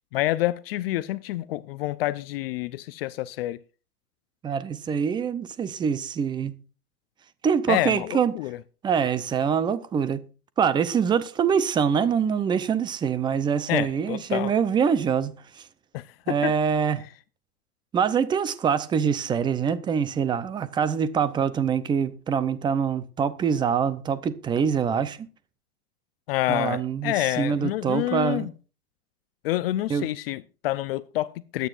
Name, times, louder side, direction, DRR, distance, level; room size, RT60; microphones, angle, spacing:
voice 1, 0.1-3.6 7.7-8.6 13.7-14.5 15.9-16.5 26.3-28.5 29.4-31.7, left 16 dB, 40° left, 0.5 m, -28 dB
voice 2, 4.4-6.5 7.4-8.3 8.8-10.2 10.6-15.3 16.3-17.0 17.9-25.2 26.5-28.5 29.9-30.1, right 7 dB, 10° right, 0.6 m, -24 dB
21.0 x 9.2 x 2.5 m
hypercardioid pair, 125°, 45 cm